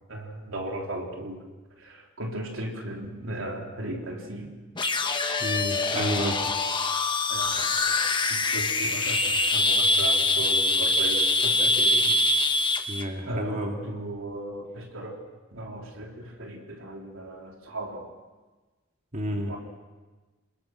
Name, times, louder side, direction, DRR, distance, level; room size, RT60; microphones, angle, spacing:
voice 1, 0.1-1.4 1.8-4.5 5.9-6.5 7.3-8.0 8.3-12.2 13.2-15.2 15.5-18.1 19.5-19.6, right 1 dB, 85° right, 0 dB, 3.7 m, -36 dB
sound 1, 4.7-13.0, left 2 dB, 25° left, 1.3 m, -24 dB
voice 2, 5.4-6.4 12.9-13.7 19.1-19.5, equal, 40° right, 1 dB, 2.6 m, -30 dB
28.0 x 20.5 x 6.4 m, 1.3 s
head